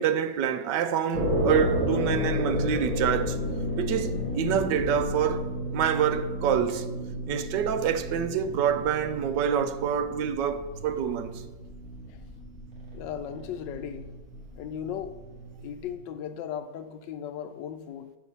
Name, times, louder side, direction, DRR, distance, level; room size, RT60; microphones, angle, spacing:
voice 1, 0.0-3.4 3.8-6.9 7.3-11.4, right 8 dB, 75° right, 1.2 m, -27 dB
sound 1, 1.1-15.9, equal, 45° right, 2.2 m, -32 dB
voice 2, 12.9-14.1 14.6-15.2 15.6-18.2, left 9 dB, 75° left, 1.2 m, -37 dB
8.3 x 5.4 x 5.5 m
omnidirectional pair, 2.1 m